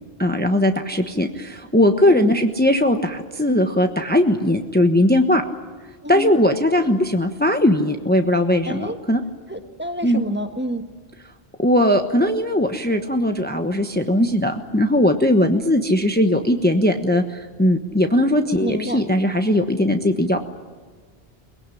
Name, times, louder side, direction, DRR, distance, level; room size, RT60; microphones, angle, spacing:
voice 1, 0.2-5.4 6.1-9.2 10.0-10.2 11.6-20.4, left 1 dB, 10° left, 5 dB, 1.2 m, -19 dB
voice 2, 8.7-9.0 9.5-10.9 18.6-19.0, equal, 10° right, 6 dB, 1.5 m, -28 dB
22.5 x 21.5 x 10.0 m, 1.5 s
omnidirectional pair, 1.0 m